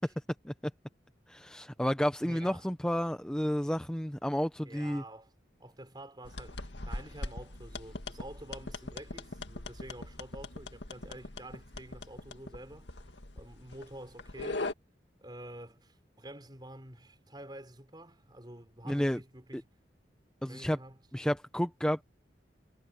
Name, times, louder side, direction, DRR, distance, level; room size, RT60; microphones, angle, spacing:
voice 1, 1.3-5.0 18.9-19.2 19.5-19.6 20.4-20.8 21.1-22.0, equal, 5° left, 0.6 m, -31 dB
voice 2, 2.2-2.7 4.6-5.3 5.6-13.1 13.4-14.7 15.2-19.7 20.4-21.0, right 1 dB, 25° right, 5.3 m, -48 dB
sound 1, 6.2-14.7, left 2 dB, 85° left, 2.1 m, -41 dB
head